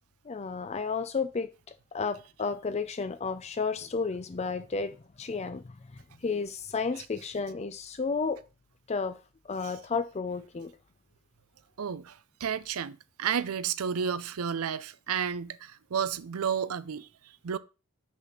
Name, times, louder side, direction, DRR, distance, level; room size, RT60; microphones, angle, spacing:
voice 1, 0.3-1.5 1.9-5.8 6.2-8.4 8.9-9.2 9.5-10.7, left 4 dB, 30° left, 0.4 m, -32 dB
voice 2, 11.8-17.1 17.4-17.6, right 7 dB, 80° right, 0.5 m, -32 dB
6.1 x 4.1 x 5.8 m
head